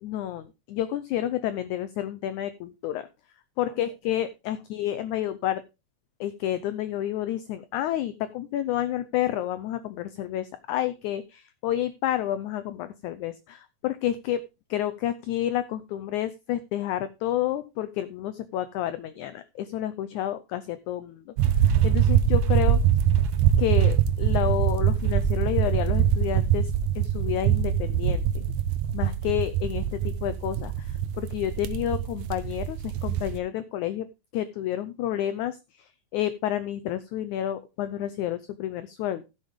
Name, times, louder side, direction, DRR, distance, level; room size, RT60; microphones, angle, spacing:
voice 1, 0.0-3.1 3.6-5.6 6.2-14.4 14.7-22.8 23.6-28.5 28.9-34.1 34.3-39.2, left 12 dB, 90° left, 12 dB, 1.7 m, -30 dB
sound 1, 21.4-33.4, right 9 dB, 85° right, 1.6 m, -23 dB
15.5 x 7.0 x 3.6 m, 0.28 s
omnidirectional pair, 4.2 m